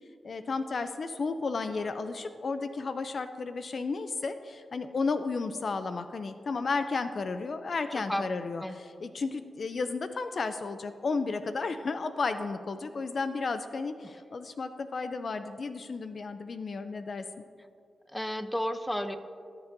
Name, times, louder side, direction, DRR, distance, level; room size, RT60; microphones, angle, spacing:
voice 1, 0.2-17.3, left 4 dB, 60° left, 10 dB, 0.4 m, -33 dB
voice 2, 18.1-19.2, equal, 10° left, 9 dB, 0.7 m, -32 dB
17.0 x 6.9 x 2.7 m, 2.3 s
cardioid pair, 60°, 0 cm